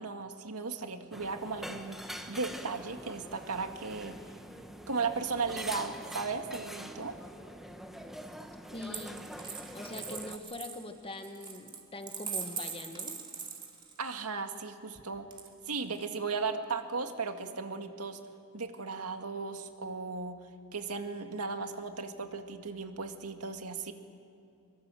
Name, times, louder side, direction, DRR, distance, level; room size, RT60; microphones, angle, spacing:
voice 1, 0.0-4.2 4.9-7.2 14.0-15.3 15.7-18.2 18.5-20.5 20.7-23.9, right 4 dB, 85° right, 6 dB, 1.9 m, -36 dB
sound 1, 1.1-10.4, equal, ahead, 1.3 m, -44 dB
voice 2, 8.7-9.2 9.7-13.2, left 2 dB, 25° left, 6 dB, 1.7 m, -43 dB
Coin (dropping), 8.8-14.2 15.3-16.0, right 6 dB, 25° right, 2.5 m, -41 dB
24.0 x 23.5 x 7.6 m, 2.6 s
head